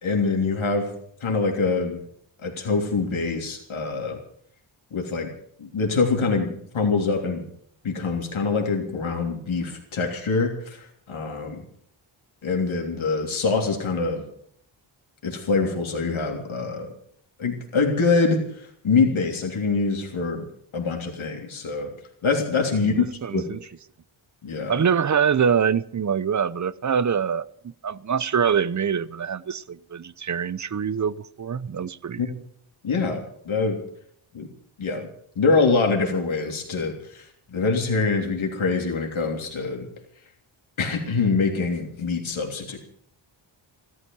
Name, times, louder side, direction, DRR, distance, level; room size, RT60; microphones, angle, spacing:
voice 1, 0.0-0.9 1.2-2.0 2.4-4.2 4.9-5.3 5.6-7.4 7.8-11.6 12.4-14.2 15.2-16.9 17.4-20.4 20.7-21.9 22.2-23.1 23.3-23.4 24.4-24.8 32.2-32.3 32.8-33.8 34.3-34.5 34.8-35.1 35.4-39.9 40.8-42.8, left 4 dB, 75° left, 3.3 m, -24 dB
voice 2, 22.8-23.6 24.7-32.2, right 7 dB, 35° right, 0.7 m, -24 dB
15.0 x 12.5 x 7.1 m
cardioid pair, 80°, 49 cm